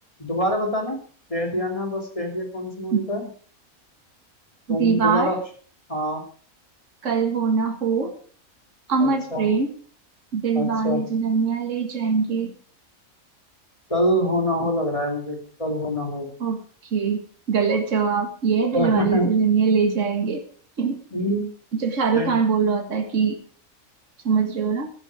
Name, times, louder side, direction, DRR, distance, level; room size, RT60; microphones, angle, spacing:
voice 1, 0.2-1.0 1.3-3.3 4.7-5.4 5.9-6.2 9.0-9.5 10.5-11.0 13.9-16.3 18.7-19.3 21.1-21.5 22.1-22.4, equal, 25° left, 1 dB, 3.0 m, -25 dB
voice 2, 4.7-5.3 7.0-8.1 8.9-9.8 10.3-12.5 16.4-16.6 16.9-20.4 20.8-21.0 21.8-23.4 24.2-24.9, right 5 dB, 65° right, 4 dB, 2.1 m, -22 dB
15.0 x 12.5 x 4.9 m, 0.43 s
omnidirectional pair, 1.4 m